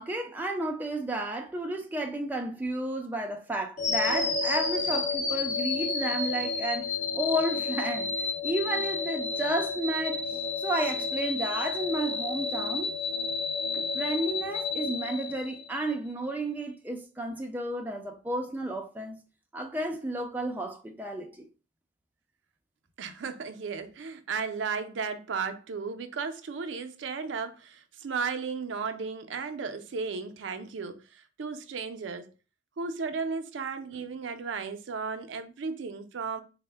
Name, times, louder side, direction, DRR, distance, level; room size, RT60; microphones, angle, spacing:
voice 1, 0.0-6.9 7.1-8.1 8.4-12.9 13.7-19.2 19.5-21.5, right 1 dB, 10° right, 0.4 m, -32 dB
sound 1, 3.8-15.9, left 4 dB, 40° left, 0.6 m, -31 dB
voice 2, 23.0-32.3 32.8-36.4, right 5 dB, 85° right, 0.4 m, -35 dB
4.3 x 2.1 x 3.3 m
head